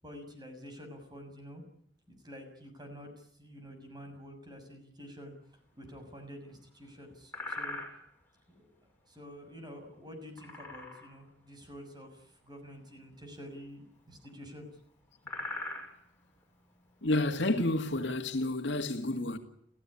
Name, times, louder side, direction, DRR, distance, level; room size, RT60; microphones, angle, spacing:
voice 1, 0.0-1.6 2.1-5.3 5.8-7.8 8.5-8.7 9.1-14.7 17.9-18.1, equal, 20° right, 6.6 m, -48 dB
sound 1, 5.7-6.2 6.6-6.9 7.2-8.4 10.2-11.3 11.6-11.7 12.0-12.3 13.2-14.3 14.6-14.7 15.0-17.8, left 2 dB, 10° left, 7.1 m, -42 dB
voice 2, 17.0-19.4, left 2 dB, 65° left, 2.2 m, -30 dB
28.5 x 16.0 x 9.9 m
head